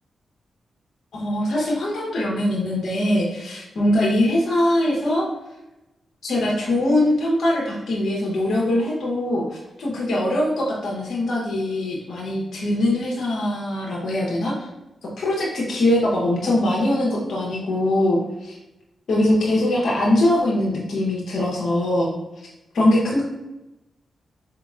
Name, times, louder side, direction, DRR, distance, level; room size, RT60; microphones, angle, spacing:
voice 1, 1.1-5.3 6.2-14.7 15.2-18.6 19.1-22.1 22.7-23.2, left 1 dB, 70° left, -4 dB, 0.8 m, -22 dB
4.2 x 2.8 x 2.4 m, 0.96 s
supercardioid pair, 45°, 0 cm